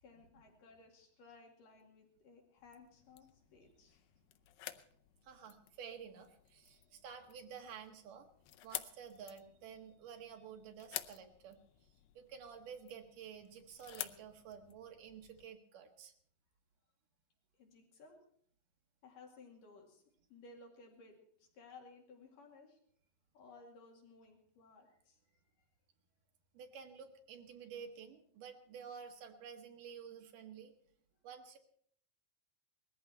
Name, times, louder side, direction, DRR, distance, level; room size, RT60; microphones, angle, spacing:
voice 1, 0.0-4.0 17.6-18.2 19.0-20.0 20.3-22.8 23.3-25.7, left 3 dB, 70° left, 1 dB, 3.8 m, -59 dB
sound 1, 2.6-15.5, left 14 dB, 85° left, 2.5 m, -51 dB
voice 2, 5.2-8.3 8.6-16.1 26.5-30.7 31.2-31.6, right 7 dB, 70° right, 4 dB, 3.0 m, -51 dB
20.0 x 14.5 x 4.4 m, 0.64 s
omnidirectional pair, 4.0 m